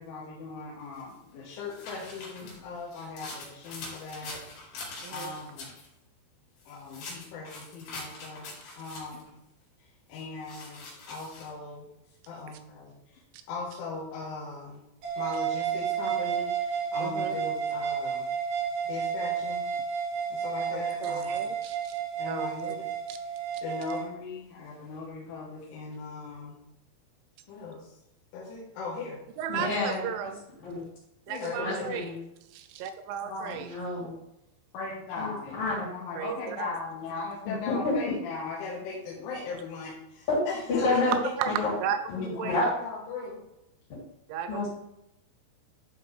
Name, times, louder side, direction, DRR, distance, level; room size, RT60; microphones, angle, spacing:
voice 1, 0.0-5.7 6.7-8.5 8.8-9.3 9.8-11.9 12.3-13.2 13.5-14.8 15.2-18.3 18.9-19.7 20.3-21.4 22.2-22.9 23.3-23.4 23.6-26.6 27.5-27.9 28.3-29.2 29.5-29.7 31.3-32.2 33.2-33.6 34.7-35.6 35.9-41.3 42.2-43.4, left 4 dB, 85° left, -5 dB, 3.7 m, -39 dB
sound 1, 1.0-5.9 6.6-9.3 10.1-11.5, left 3 dB, 65° left, 4.3 m, -43 dB
sound 2, 15.0-24.1, right 7 dB, 60° right, 3.9 m, -31 dB
voice 2, 17.0-17.4 20.7-21.9 22.3-22.8 23.1-23.2 29.4-30.3 31.3-32.0 32.5-33.7 36.2-36.8 41.4-41.5 41.8-42.0 42.4-42.6 44.3-44.7, right 8 dB, 85° right, 8 dB, 2.8 m, -35 dB
voice 3, 29.5-30.1 30.6-30.8 31.5-32.2 33.5-34.1 35.2-35.3 35.6-35.9 37.4-38.1 40.3-40.4 40.7-41.2 41.5-41.7 42.1-42.7 43.9-44.0 44.5-44.7, left 3 dB, 35° left, -6 dB, 3.0 m, -29 dB
11.5 x 4.7 x 3.3 m, 0.86 s
omnidirectional pair, 5.5 m